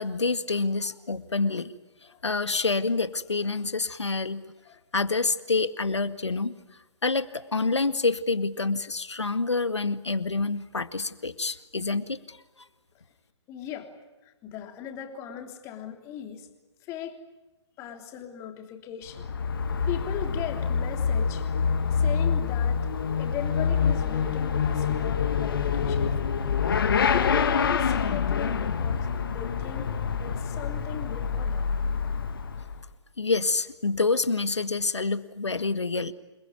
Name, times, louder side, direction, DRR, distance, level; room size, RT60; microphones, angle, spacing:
voice 1, 0.0-1.7 2.2-4.4 4.9-6.6 7.0-12.4 33.2-36.1, left 3 dB, 75° left, 12 dB, 1.9 m, -27 dB
voice 2, 13.5-13.9 14.2-16.5 16.8-17.2 17.8-19.3 19.9-21.5 21.9-22.9 23.2-26.3 27.1-31.7, left 9 dB, 20° left, 5 dB, 3.2 m, -38 dB
Motorcycle / Accelerating revving vroom, 19.1-32.9, left 6 dB, 50° left, 2.4 m, -26 dB
29.0 x 21.0 x 9.3 m, 1.1 s
figure-of-eight pair, 135°, 15 cm